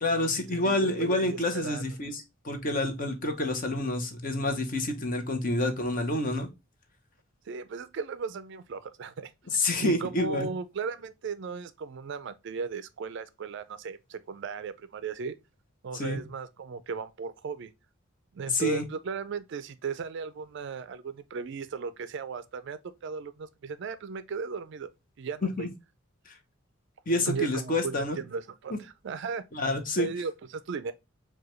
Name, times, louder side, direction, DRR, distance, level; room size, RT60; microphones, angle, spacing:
voice 1, 0.0-6.5 9.5-10.5 15.9-16.2 18.5-18.8 25.6-25.7 26.3-26.4 27.1-28.2 29.5-30.1, left 1 dB, 40° left, 0.7 m, -28 dB
voice 2, 0.5-1.8 7.5-9.3 9.8-15.4 15.8-17.7 18.3-24.9 25.2-25.7 27.3-29.4 30.0-30.9, right 5 dB, 55° right, 0.3 m, -36 dB
4.7 x 2.3 x 3.0 m
head